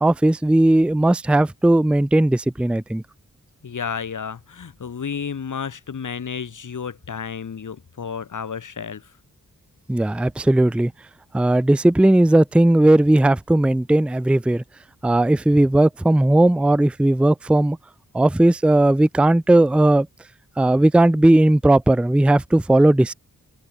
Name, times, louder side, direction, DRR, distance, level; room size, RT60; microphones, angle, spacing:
voice 1, 0.0-3.0 9.9-10.9 11.3-14.6 15.0-17.8 18.1-20.1 20.6-23.1, right 1 dB, 5° right, 0.5 m, -17 dB
voice 2, 3.6-9.1, left 6 dB, 70° left, 7.2 m, -31 dB
wide cardioid pair, 140°, 32 cm